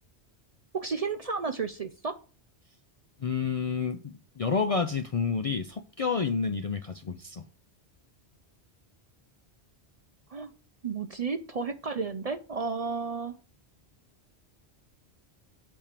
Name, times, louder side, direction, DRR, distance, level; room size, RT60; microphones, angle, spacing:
voice 1, 0.7-2.2 10.3-10.5 10.8-13.4, right 5 dB, 45° right, 0.5 m, -32 dB
voice 2, 3.2-7.4, left 5 dB, 50° left, 0.4 m, -29 dB
8.6 x 3.5 x 6.6 m
omnidirectional pair, 1.1 m